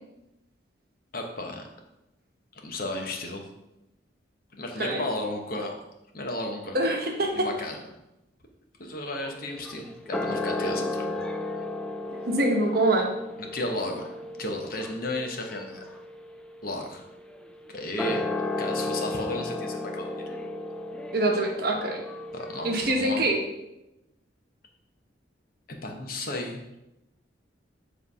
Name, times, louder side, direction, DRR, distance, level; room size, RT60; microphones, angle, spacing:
voice 1, 1.1-1.6 2.5-3.5 4.5-5.8 6.1-6.9 7.3-7.8 8.8-11.2 11.5-11.6 13.4-14.0 14.4-15.8 16.6-17.1 17.7-20.2 22.3-23.3 25.8-26.8, left 1 dB, 50° left, 2 dB, 1.0 m, -34 dB
voice 2, 6.7-7.5 12.2-13.1 21.1-22.0 22.6-23.4, right 1 dB, 55° right, 1 dB, 1.1 m, -24 dB
sound 1, 9.1-22.9, left 2 dB, 5° left, 0.3 m, -34 dB
7.4 x 3.3 x 5.5 m, 0.93 s
head